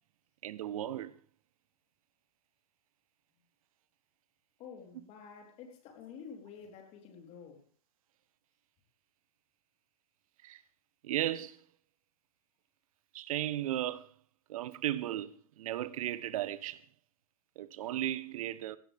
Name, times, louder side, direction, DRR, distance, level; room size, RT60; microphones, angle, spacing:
voice 1, 0.4-1.1 10.4-10.6 11.0-11.6 13.1-14.1 14.5-16.8 17.6-18.8, right 13 dB, 65° right, 1.1 m, -35 dB
voice 2, 4.6-7.6, left 6 dB, 35° left, 4.0 m, -49 dB
17.5 x 15.5 x 3.6 m
hypercardioid pair, 140°, 19 cm